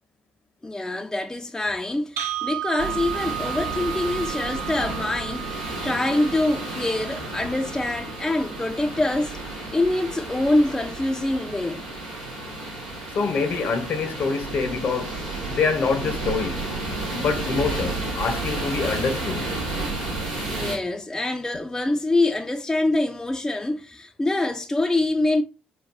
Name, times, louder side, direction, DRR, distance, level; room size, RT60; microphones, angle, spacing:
voice 1, 0.6-9.4 9.7-11.8 20.4-25.4, left 2 dB, 15° left, 0.4 m, -25 dB
sound 1, 2.2-10.2, right 13 dB, 65° right, 0.4 m, -35 dB
sound 2, 2.8-20.8, right 2 dB, 85° right, 0.8 m, -32 dB
voice 2, 13.1-15.2 15.5-16.6 17.1-19.5, left 4 dB, 50° left, 0.7 m, -25 dB
3.7 x 2.2 x 2.6 m
figure-of-eight pair, 45°, 4 cm